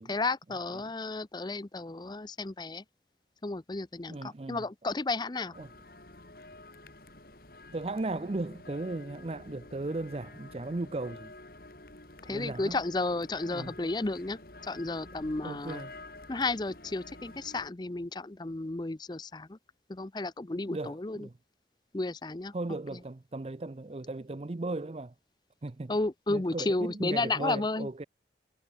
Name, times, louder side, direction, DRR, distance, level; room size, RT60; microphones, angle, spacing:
voice 1, 0.0-2.8 3.4-5.5 12.2-15.8 16.3-19.6 19.9-21.3 21.9-22.5 22.9-23.0 25.9-27.9, left 2 dB, 25° left, 0.6 m, -33 dB
voice 2, 4.1-4.6 5.6-5.7 7.7-11.3 12.3-12.7 13.5-13.7 15.4-15.9 20.7-21.3 22.5-25.1 25.6-25.9 26.3-28.0, right 2 dB, 35° right, 0.5 m, -36 dB
sound 1, 5.5-17.7, left 2 dB, 55° left, 4.1 m, -49 dB
head